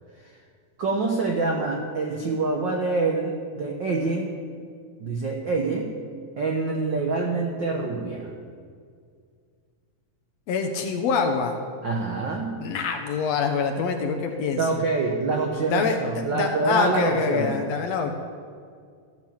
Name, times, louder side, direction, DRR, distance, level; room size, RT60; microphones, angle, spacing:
voice 1, 0.8-4.3 5.0-5.9 6.4-8.3 11.8-12.6 14.6-17.6, right 3 dB, 70° right, 0 dB, 1.1 m, -26 dB
voice 2, 10.5-11.6 12.5-14.6 15.7-16.0 16.3-18.1, left 5 dB, 70° left, 3 dB, 1.8 m, -25 dB
14.5 x 6.2 x 7.2 m, 2.1 s
omnidirectional pair, 3.5 m